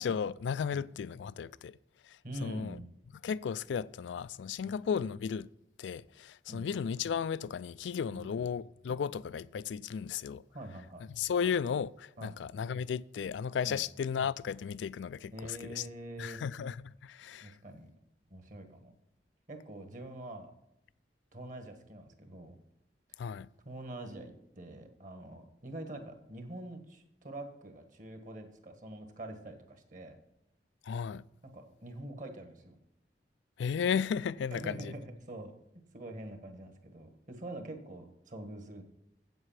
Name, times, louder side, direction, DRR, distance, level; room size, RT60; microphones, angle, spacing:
voice 1, 0.0-1.8 2.0-2.8 3.2-5.5 5.8-10.4 11.1-15.9 16.2-17.6 23.2-23.5 30.8-31.2 33.6-34.9, left 7 dB, 85° left, 0.3 m, -34 dB
voice 2, 2.2-2.8 4.6-4.8 6.5-6.7 8.1-8.5 10.5-11.1 12.2-12.4 13.6-13.8 15.3-16.4 17.4-17.9 18.3-18.9 19.5-20.5 21.3-22.6 23.1-23.2 23.6-30.2 31.4-32.8 34.5-35.5 35.9-38.8, right 1 dB, 45° right, 1.5 m, -45 dB
8.3 x 7.9 x 5.8 m
head